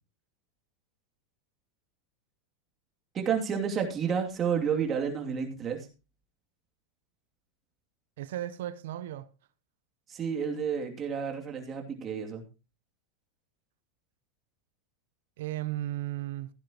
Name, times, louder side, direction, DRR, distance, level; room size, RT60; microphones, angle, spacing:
voice 1, 3.1-5.9 10.1-12.4, right 7 dB, 25° right, 2.7 m, -30 dB
voice 2, 8.2-9.3 15.4-16.5, right 14 dB, 80° right, 0.8 m, -35 dB
15.5 x 10.5 x 3.0 m
supercardioid pair, 140°, 0 cm